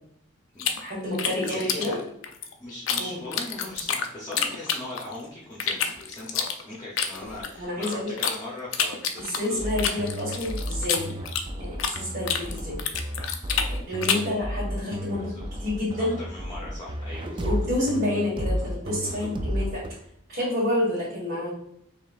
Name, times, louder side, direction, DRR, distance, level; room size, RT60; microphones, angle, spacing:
sound 1, 0.6-3.0 3.3-5.2 5.6-8.4 8.7-12.0 12.3-14.3, left 7 dB, 85° left, 0.5 m, -28 dB
voice 1, 0.8-2.0 3.0-3.2 7.5-8.1 9.2-11.1 11.6-12.8 13.9-15.3 15.6-16.1 17.3-19.8 20.3-21.5, left 1 dB, 55° right, -9 dB, 1.6 m, -29 dB
voice 2, 1.4-2.0 2.6-10.0 14.0-14.3 15.0-15.4 15.9-17.5 19.0-19.3, left 2 dB, 20° left, -6 dB, 0.8 m, -40 dB
sound 2, 9.6-19.9, equal, 25° right, 0.3 m, -32 dB
4.9 x 3.1 x 2.5 m, 0.72 s
head